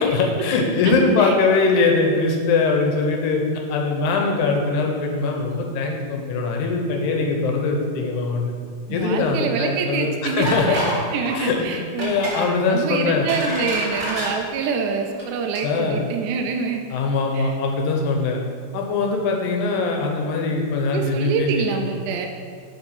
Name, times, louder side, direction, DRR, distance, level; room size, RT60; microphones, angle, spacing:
voice 1, 0.0-3.4 3.7-8.5 8.9-10.9 11.3-11.7 12.0-13.3 15.6-16.1 16.9-18.4 18.7-21.8, left 3 dB, 75° left, 1 dB, 1.9 m, -21 dB
voice 2, 8.9-10.8 11.1-16.8 17.3-17.6 20.9-22.3, right 5 dB, 85° right, 4 dB, 1.7 m, -26 dB
sound 1, 10.4-11.0 11.3-11.5 12.0-12.5 13.0-14.3 15.1-15.2 15.5-15.6, right 1 dB, 30° right, 1.1 m, -28 dB
9.7 x 3.5 x 5.6 m, 2.1 s
omnidirectional pair, 4.1 m